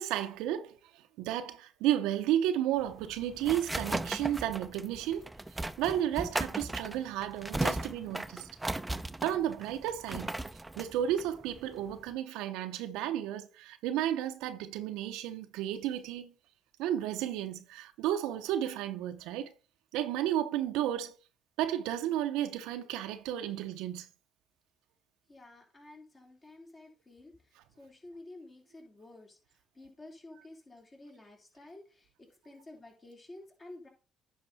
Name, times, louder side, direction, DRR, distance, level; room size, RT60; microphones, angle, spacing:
voice 1, 0.0-5.3 5.8-8.5 9.2-10.3 10.8-16.3 16.8-19.5 19.9-21.2 21.6-24.1, right 11 dB, 85° right, 0.7 m, -33 dB
sound 1, 2.8-12.1, right 2 dB, 15° right, 0.6 m, -37 dB
voice 2, 25.3-33.9, left 2 dB, 30° left, 3.3 m, -52 dB
10.0 x 5.4 x 4.1 m
supercardioid pair, 75°, 0 cm